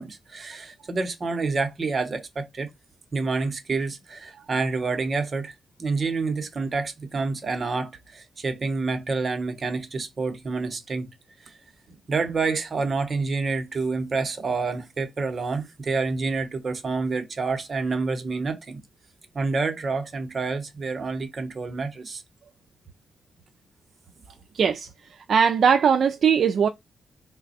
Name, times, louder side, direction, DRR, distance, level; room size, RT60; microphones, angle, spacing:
voice 1, 0.0-2.7 3.1-5.5 5.8-11.1 11.4-11.5 12.1-18.8 19.3-22.2, right 4 dB, 45° right, 0.9 m, -28 dB
voice 2, 24.5-26.7, right 7 dB, 65° right, 0.3 m, -20 dB
4.0 x 2.2 x 4.0 m
cardioid pair, 90°, 0 cm